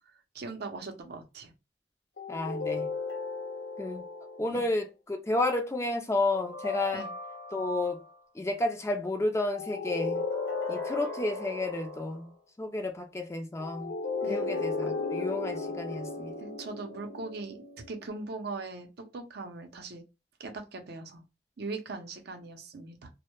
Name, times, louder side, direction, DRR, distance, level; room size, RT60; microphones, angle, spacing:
voice 1, 0.3-1.5 4.5-4.6 6.9-7.1 14.2-14.4 16.4-17.6 17.9-18.9 19.1-20.0 20.4-21.2 21.6-23.1, right 3 dB, 60° right, 0.5 m, -40 dB
sound 1, 2.2-4.6 6.3-8.1 9.5-12.3 13.6-18.1, left 3 dB, 65° left, 0.7 m, -36 dB
voice 2, 2.3-2.9 3.8-4.0 4.4-7.1 7.5-8.0 8.3-10.2 10.7-12.3 12.6-13.9 14.3-16.3, left 2 dB, 15° left, 0.4 m, -31 dB
2.1 x 2.0 x 2.9 m
head